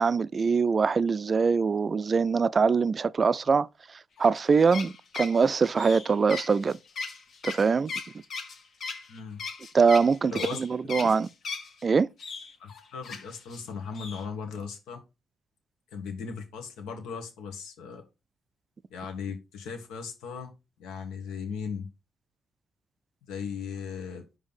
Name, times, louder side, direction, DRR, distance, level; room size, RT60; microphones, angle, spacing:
voice 1, 0.0-3.7 4.2-6.8 7.4-7.9 9.7-11.3 11.8-12.1, right 5 dB, 35° right, 0.3 m, -23 dB
sound 1, 4.2-11.8 12.2-13.6 13.9-14.2, left 4 dB, 60° left, 1.3 m, -38 dB
voice 2, 9.1-9.4 10.2-10.6 11.0-11.1 12.6-15.0 15.9-18.0 18.9-20.5 20.8-21.9 23.3-24.2, left 6 dB, 90° left, 1.5 m, -37 dB
5.3 x 3.3 x 5.6 m
cardioid pair, 90°, 0 cm